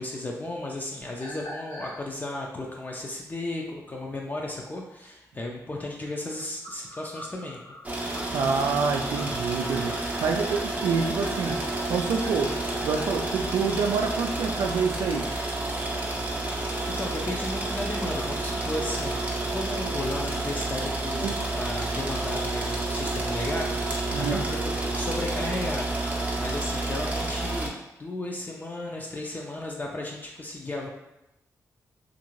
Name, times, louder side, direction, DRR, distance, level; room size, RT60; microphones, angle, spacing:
voice 1, 0.0-7.6 16.5-23.7 24.2-27.7 28.0-30.9, left 1 dB, 30° left, -1 dB, 0.5 m, -34 dB
sound 1, 1.0-2.0 6.4-13.5 17.4-20.3, equal, 90° left, 1.0 m, -44 dB
sound 2, 7.8-27.7, right 2 dB, 25° right, 0.6 m, -30 dB
voice 2, 8.3-9.9 10.2-11.6 11.9-12.5 12.8-15.3 21.2-21.3 24.1-24.4, right 5 dB, 85° right, 4 dB, 0.4 m, -27 dB
2.6 x 2.5 x 3.0 m, 0.88 s
cardioid pair, 65°, 6 cm